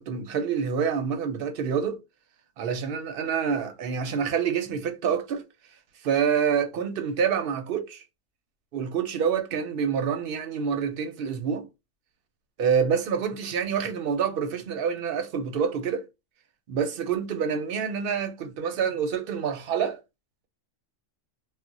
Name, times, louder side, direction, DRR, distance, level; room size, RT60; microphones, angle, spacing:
voice 1, 0.0-2.0 2.6-5.4 6.0-8.0 8.7-11.7 12.6-16.1 16.7-20.0, right 7 dB, 60° right, 0.7 m, -27 dB
2.4 x 2.1 x 3.9 m
omnidirectional pair, 1.3 m